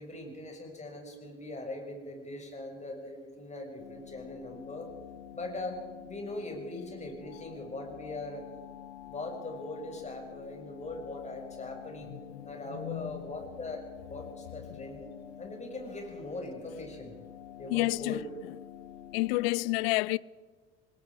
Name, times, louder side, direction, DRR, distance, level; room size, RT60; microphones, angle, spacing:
voice 1, 0.0-4.9 5.3-5.8 6.1-8.4 9.1-12.1 12.5-15.1 15.4-17.1 17.6-18.2, left 2 dB, 20° left, 6.1 m, -41 dB
sound 1, 3.8-19.6, left 11 dB, 75° left, 1.5 m, -48 dB
voice 2, 12.1-13.2 14.7-14.8 17.7-18.6 19.1-20.2, left 21 dB, 60° left, 0.5 m, -31 dB
28.0 x 20.0 x 4.9 m
figure-of-eight pair, 70°, 35 cm